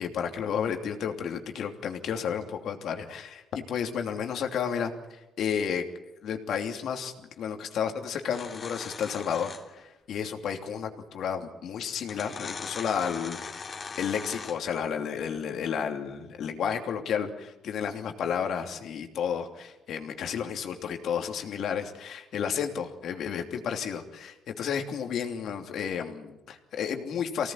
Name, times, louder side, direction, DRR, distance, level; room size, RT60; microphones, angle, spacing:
voice 1, 0.0-5.8 6.2-13.4 14.0-27.5, left 7 dB, 70° left, 5 dB, 2.9 m, -32 dB
sound 1, 8.3-9.8 11.1-11.2 12.0-14.8, left 5 dB, 40° left, 3.1 m, -40 dB
25.0 x 18.0 x 9.3 m, 1.0 s
cardioid pair, 90°, 0 cm